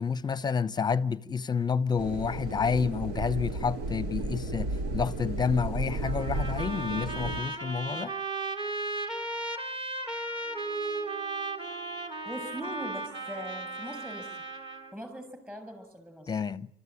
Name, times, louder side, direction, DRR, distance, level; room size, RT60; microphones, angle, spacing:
voice 1, 0.0-8.1 16.3-16.7, left 5 dB, 25° left, 0.8 m, -29 dB
sound 1, 2.0-7.4, right 2 dB, 90° right, 2.6 m, -33 dB
Trumpet, 6.0-14.9, right 2 dB, 30° right, 3.5 m, -35 dB
sound 2, 10.4-15.2, right 9 dB, 50° right, 7.7 m, -51 dB
voice 2, 12.2-14.3 14.9-16.4, equal, 10° right, 7.5 m, -41 dB
27.5 x 14.0 x 9.9 m
cardioid pair, 110°, 17 cm